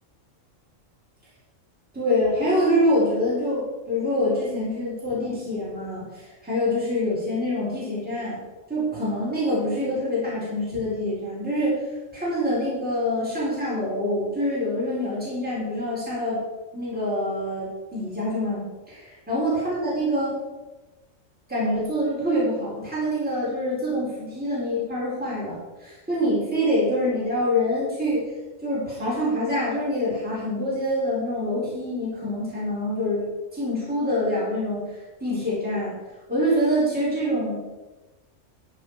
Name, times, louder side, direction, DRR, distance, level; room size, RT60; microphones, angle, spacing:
voice 1, 1.9-8.4 8.7-11.8 12.1-16.4 16.7-20.4 21.5-28.3 28.6-33.2 33.5-34.9 35.2-35.9 36.3-37.5, equal, 5° right, -9 dB, 4.6 m, -25 dB
12.5 x 8.4 x 5.0 m, 1.1 s
omnidirectional pair, 1.3 m